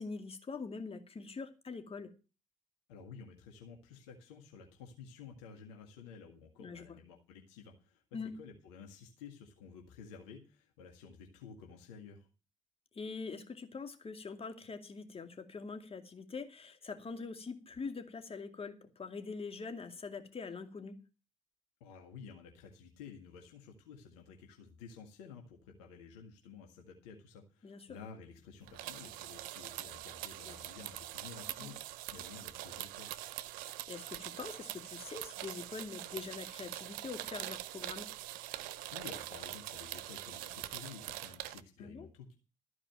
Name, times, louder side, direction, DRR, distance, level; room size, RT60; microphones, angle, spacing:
voice 1, 0.0-2.1 6.6-6.9 8.1-8.3 12.9-21.0 27.6-27.9 30.5-30.6 31.6-31.7 33.9-38.1 41.8-42.1, left 4 dB, 40° left, 2.5 m, -44 dB
voice 2, 2.9-8.0 8.4-12.3 21.8-33.2 38.9-42.3, left 6 dB, 85° left, 1.8 m, -52 dB
sound 1, 28.7-41.6, right 15 dB, 75° right, 0.6 m, -44 dB
14.5 x 4.9 x 9.1 m
hypercardioid pair, 40°, 15 cm